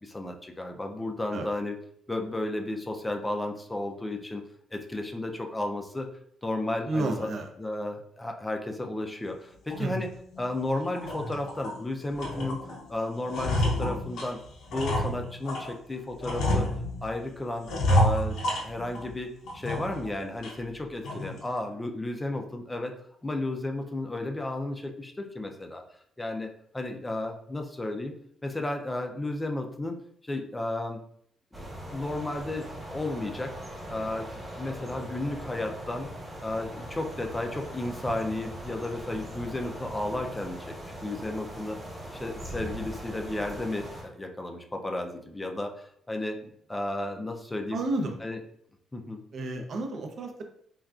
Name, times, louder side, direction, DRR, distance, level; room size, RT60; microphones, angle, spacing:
voice 1, 0.0-1.8 2.1-4.4 4.7-6.1 6.4-7.3 7.6-10.1 10.4-14.4 14.7-16.7 17.0-22.9 23.2-25.8 26.2-28.1 28.4-30.0 30.2-31.0 31.6-33.5 33.9-34.3 34.6-36.1 36.4-40.6 41.0-41.8 42.1-46.4 46.7-47.8 48.2-48.4 48.9-49.2, left 2 dB, 15° left, 3 dB, 0.4 m, -33 dB
voice 2, 6.9-7.5 9.8-10.0 47.7-48.2 49.3-50.4, right 2 dB, 60° right, 4 dB, 0.5 m, -31 dB
sound 1, 9.7-9.8 10.3-10.4 10.9-11.8 12.2-12.8 13.1-15.7 16.2-17.2 17.7-19.1 19.5-20.1 20.4-20.5 21.0-21.4, left 1 dB, 75° left, 0.6 m, -28 dB
sound 2, 31.5-44.0, right 1 dB, 20° right, 1.0 m, -41 dB
3.6 x 2.3 x 2.3 m, 0.67 s
cardioid pair, 90°, 0 cm